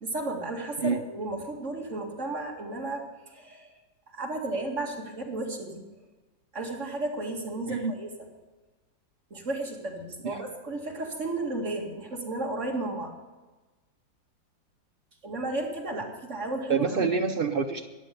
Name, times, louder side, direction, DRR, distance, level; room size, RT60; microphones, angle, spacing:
voice 1, 0.0-3.7 4.1-5.8 6.5-8.1 9.3-13.1 15.2-17.1, right 2 dB, 40° right, 0 dB, 2.4 m, -33 dB
voice 2, 16.7-17.9, right 5 dB, 75° right, 4 dB, 0.5 m, -27 dB
14.5 x 10.5 x 6.8 m, 1.2 s
omnidirectional pair, 2.0 m